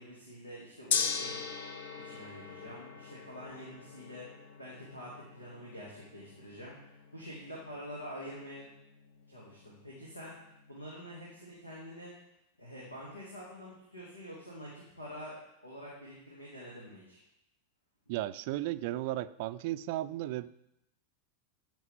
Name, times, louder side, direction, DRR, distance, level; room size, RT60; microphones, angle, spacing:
voice 1, 0.0-1.4 2.0-8.7 9.3-10.3 10.7-12.1 12.6-17.2, equal, 85° left, -5 dB, 2.4 m, -47 dB
Gong, 0.9-11.1, left 6 dB, 60° left, 0.9 m, -41 dB
voice 2, 18.1-20.5, right 15 dB, 50° right, 15 dB, 0.4 m, -35 dB
15.0 x 5.9 x 3.6 m, 0.83 s
figure-of-eight pair, 90°, 0 cm